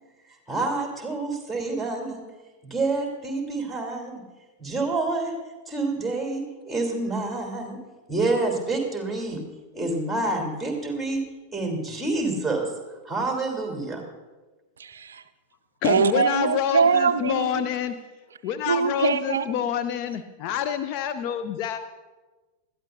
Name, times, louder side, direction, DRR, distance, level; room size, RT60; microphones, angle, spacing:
voice 1, 0.5-2.2 2.6-4.2 4.6-5.3 5.7-7.8 8.1-9.4 9.7-11.2 11.5-12.7 13.0-14.0, right 2 dB, ahead, 0 dB, 3.3 m, -27 dB
voice 2, 14.8-15.2 15.8-17.7 18.7-19.5, right 6 dB, 70° right, 13 dB, 0.3 m, -23 dB
voice 3, 15.8-17.9 18.4-21.8, left 8 dB, 40° left, 8 dB, 0.5 m, -27 dB
20.5 x 13.5 x 2.6 m, 1.2 s
figure-of-eight pair, 90°, 0 cm